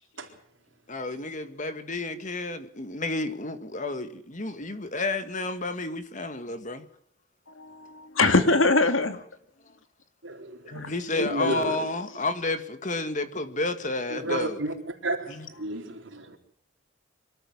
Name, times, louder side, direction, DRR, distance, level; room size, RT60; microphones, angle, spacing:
voice 1, 0.9-6.9 10.6-14.6 15.3-15.5, left 2 dB, 40° left, 1.9 m, -31 dB
voice 2, 7.6-9.2 10.7-11.5, left 3 dB, 85° left, 2.5 m, -23 dB
voice 3, 10.2-10.8 11.3-11.8 14.1-14.7 15.0-16.4, right 2 dB, 75° right, 4.2 m, -32 dB
24.5 x 13.5 x 9.6 m
head